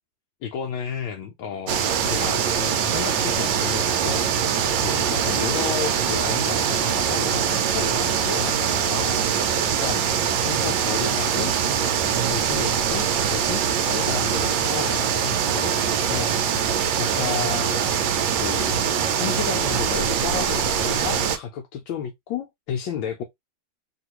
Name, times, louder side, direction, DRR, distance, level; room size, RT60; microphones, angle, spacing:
voice 1, 0.4-11.5 12.3-15.8 16.1-16.3 17.0-17.8 18.3-18.9 19.2-23.2, left 8 dB, 75° left, 1.2 m, -32 dB
sound 1, 1.7-21.4, right 7 dB, 75° right, 1.2 m, -23 dB
3.0 x 2.8 x 2.8 m
omnidirectional pair, 2.4 m